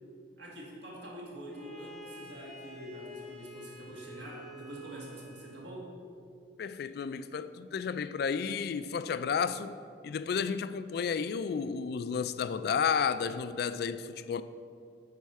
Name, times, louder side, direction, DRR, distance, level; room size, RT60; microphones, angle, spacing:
voice 1, 0.4-6.0, equal, 70° right, 1.9 m, -45 dB
Bowed string instrument, 1.5-5.7, equal, 5° left, 0.9 m, -49 dB
voice 2, 6.6-9.8 10.0-14.4, left 6 dB, 60° left, 0.3 m, -32 dB
9.4 x 4.4 x 5.5 m
head